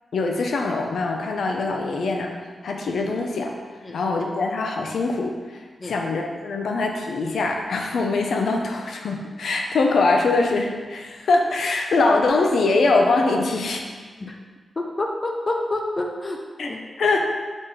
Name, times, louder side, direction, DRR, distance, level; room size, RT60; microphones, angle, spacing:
voice 1, 0.1-2.3 2.6-3.5 3.9-13.8 16.6-16.7 17.0-17.2, left 3 dB, 75° left, 2 dB, 0.7 m, -23 dB
voice 2, 14.8-16.8, left 2 dB, 25° left, 1 dB, 0.5 m, -28 dB
5.0 x 4.4 x 5.6 m, 1.4 s
wide cardioid pair, 175°, 0 cm